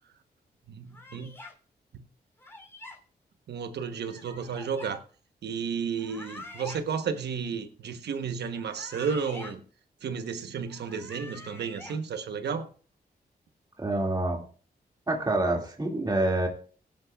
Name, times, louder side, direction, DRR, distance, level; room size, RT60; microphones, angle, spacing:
voice 1, 0.7-1.3 3.5-5.0 5.4-9.6 10.0-12.7, right 6 dB, 85° right, 8 dB, 1.1 m, -32 dB
sound 1, 0.9-1.5 2.4-3.0 4.1-4.9 5.9-6.8 8.5-9.5 10.7-12.0, left 2 dB, 15° left, 3.2 m, -45 dB
voice 2, 13.8-14.4 15.1-16.5, right 2 dB, 25° right, 1 dB, 2.3 m, -27 dB
17.0 x 10.5 x 2.4 m, 0.42 s
cardioid pair, 70°, 17 cm